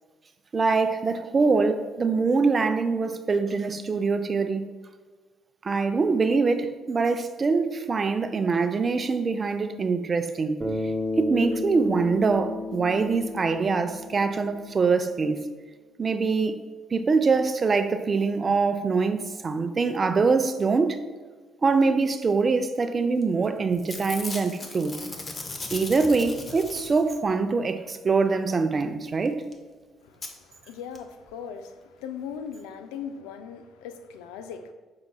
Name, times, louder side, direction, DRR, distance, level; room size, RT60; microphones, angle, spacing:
voice 1, 0.5-4.7 5.6-10.7 11.2-15.4 16.0-16.6 16.9-21.0 21.6-25.0 25.7-29.4, right 4 dB, 40° right, 0.4 m, -24 dB
Bass guitar, 10.6-15.0, left 2 dB, 15° right, 0.9 m, -32 dB
Packing tape duct tape / Tearing, 23.2-23.5 23.7-27.3 29.3-29.4 29.5-29.6 30.2-30.3 31.0-31.1 31.3-31.4, left 3 dB, 35° left, 0.7 m, -38 dB
voice 2, 30.0-34.7, left 7 dB, 85° left, 0.3 m, -39 dB
5.8 x 3.8 x 2.2 m
supercardioid pair, 60°, 0 cm